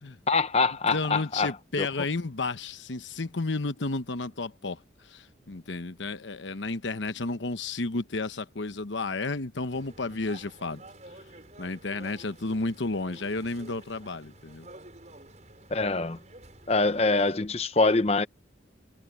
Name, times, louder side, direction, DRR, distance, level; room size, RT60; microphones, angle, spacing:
voice 1, 0.3-1.5 1.8-1.9 15.7-16.2 16.7-18.3, left 3 dB, 35° left, 0.7 m, -24 dB
voice 2, 0.9-10.8 11.6-14.7, left 3 dB, 75° left, 1.0 m, -32 dB
sound 1, 9.7-17.3, right 1 dB, 40° right, 6.7 m, -50 dB
head